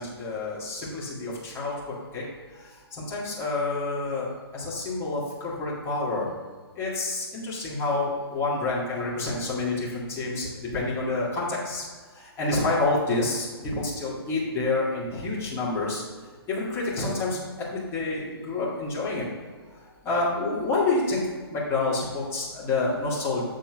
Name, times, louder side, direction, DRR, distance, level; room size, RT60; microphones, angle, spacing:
voice 1, 0.0-1.7 2.1-2.2 2.5-6.3 6.8-11.8 12.1-16.0 16.5-17.4 17.7-19.2 20.0-21.2 21.5-23.4, left 3 dB, 20° left, -6 dB, 2.1 m, -28 dB
7.4 x 3.8 x 6.0 m, 1.5 s
hypercardioid pair, 140°, 13 cm